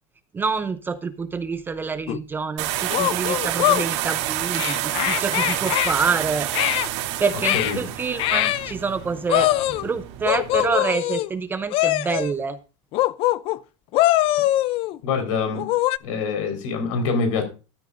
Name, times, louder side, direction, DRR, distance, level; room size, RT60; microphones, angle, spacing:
voice 1, 0.3-6.5 7.2-9.5 9.8-12.6, right 5 dB, 10° right, 10 dB, 0.6 m, -27 dB
sound 1, 2.1-2.2 2.9-3.9 4.5-5.9 6.5-6.9 7.4-7.8 8.2-8.7 9.3-9.9 10.3-11.3 11.7-12.3 12.9-13.6 13.9-15.0 15.5-16.0, left 15 dB, 35° left, 0.4 m, -22 dB
sound 2, 2.6-10.7, right 13 dB, 60° right, 2.7 m, -29 dB
voice 2, 15.0-15.7 16.0-17.4, left 4 dB, 75° left, 6 dB, 4.3 m, -25 dB
13.0 x 13.0 x 2.5 m, 0.31 s
supercardioid pair, 170°, 17 cm